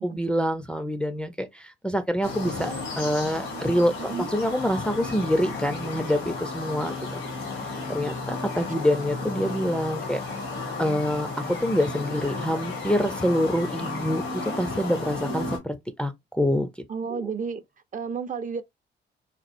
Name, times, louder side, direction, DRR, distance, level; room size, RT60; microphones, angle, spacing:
voice 1, 0.0-7.2 7.6-10.2 10.8-16.7 17.1-17.2, equal, 5° left, 0.5 m, -26 dB
sound 1, 2.2-15.6, left 3 dB, 90° left, 1.7 m, -33 dB
voice 2, 4.0-4.3 16.9-17.6 17.9-18.6, right 6 dB, 40° right, 0.6 m, -32 dB
4.2 x 2.3 x 2.5 m
cardioid pair, 90°, 20 cm